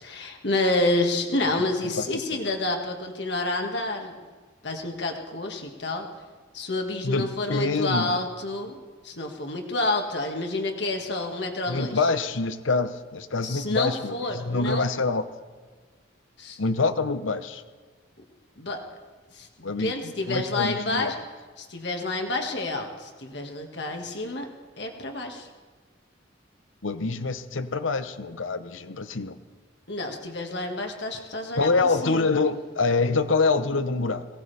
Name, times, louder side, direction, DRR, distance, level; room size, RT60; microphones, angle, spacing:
voice 1, 0.0-4.2 4.6-6.1 6.5-8.8 9.0-12.1 13.4-14.9 16.4-16.6 18.6-18.8 19.3-21.2 21.6-24.5 24.8-25.5 29.9-31.7 32.0-32.3, left 2 dB, 60° left, 3 dB, 1.9 m, -29 dB
voice 2, 1.8-2.6 7.0-8.2 11.7-15.3 16.6-17.6 19.6-21.2 26.8-29.4 31.6-34.3, left 3 dB, 85° left, 11 dB, 0.9 m, -26 dB
22.0 x 18.0 x 3.4 m, 1.4 s
head